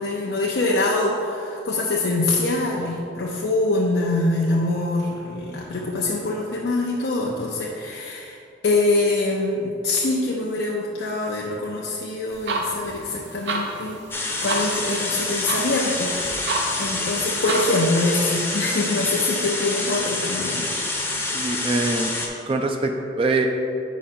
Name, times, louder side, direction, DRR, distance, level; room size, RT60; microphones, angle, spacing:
voice 1, 0.0-14.0 14.4-16.5 16.8-20.7, left 2 dB, 75° left, -3 dB, 0.5 m, -24 dB
sound 1, 12.3-17.9, right 2 dB, 90° right, 0.7 m, -31 dB
sound 2, 14.1-22.3, left 2 dB, 15° left, 0.6 m, -27 dB
voice 2, 21.3-22.1 22.5-23.5, right 3 dB, 30° right, 4 dB, 0.3 m, -23 dB
5.0 x 5.0 x 4.3 m, 2.6 s
head